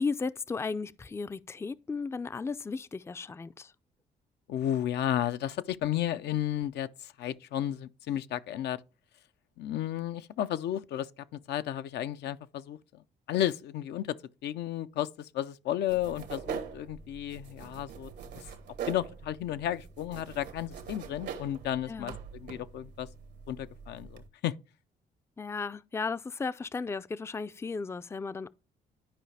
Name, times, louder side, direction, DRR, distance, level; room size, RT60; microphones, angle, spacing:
voice 1, 0.0-3.7 21.9-22.2 25.4-28.5, left 4 dB, 15° left, 0.4 m, -35 dB
voice 2, 4.5-8.8 9.6-13.0 13.3-14.2 14.4-18.1 18.4-18.5 18.9-23.1 23.5-24.6, left 12 dB, 80° left, 0.6 m, -33 dB
sound 1, 15.9-24.3, right 7 dB, 85° right, 1.4 m, -43 dB
11.5 x 4.8 x 3.3 m
cardioid pair, 85°, 17 cm